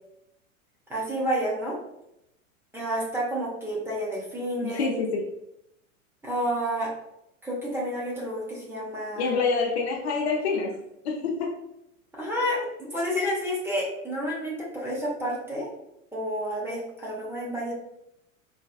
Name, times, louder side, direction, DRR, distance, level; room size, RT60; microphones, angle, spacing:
voice 1, 0.9-1.8 2.7-4.9 6.2-6.9 7.4-9.3 12.1-15.7 16.1-17.7, equal, 5° right, -6 dB, 0.8 m, -30 dB
voice 2, 4.6-5.2 9.2-10.8 11.0-11.5, left 4 dB, 50° left, 0 dB, 0.6 m, -26 dB
4.0 x 2.4 x 2.3 m, 0.83 s
figure-of-eight pair, 90°, 42 cm